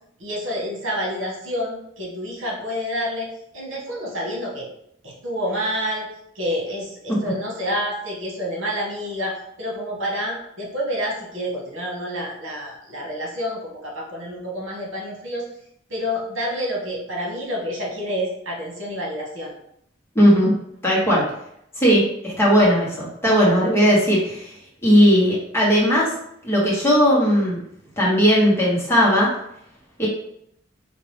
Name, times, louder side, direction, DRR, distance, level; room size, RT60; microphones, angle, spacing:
voice 1, 0.2-3.3 3.5-4.7 5.0-6.1 6.3-15.4 15.9-19.5, equal, 85° right, -2 dB, 1.4 m, -28 dB
voice 2, 20.1-20.5 20.8-21.2 21.8-24.5 24.8-26.1 26.4-27.6 28.0-29.3 30.0-30.1, equal, 15° left, -6 dB, 1.4 m, -17 dB
5.1 x 2.8 x 3.4 m, 0.74 s
head